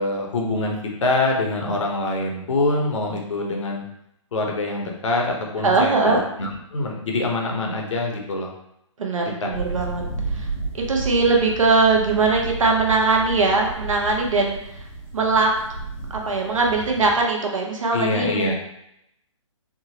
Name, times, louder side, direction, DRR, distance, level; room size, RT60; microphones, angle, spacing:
voice 1, 0.0-3.8 4.3-6.1 6.4-8.5 9.4-9.5 17.9-18.5, left 2 dB, 70° left, 1 dB, 0.8 m, -24 dB
voice 2, 5.6-6.2 9.0-10.0 10.3-10.5 10.7-14.8 15.1-15.5 16.1-18.5, right 3 dB, 80° right, 1 dB, 0.8 m, -20 dB
sound 1, 9.5-17.2, right 3 dB, 45° right, 1.4 m, -32 dB
3.6 x 2.0 x 2.8 m, 0.79 s
hypercardioid pair, 135°, 17 cm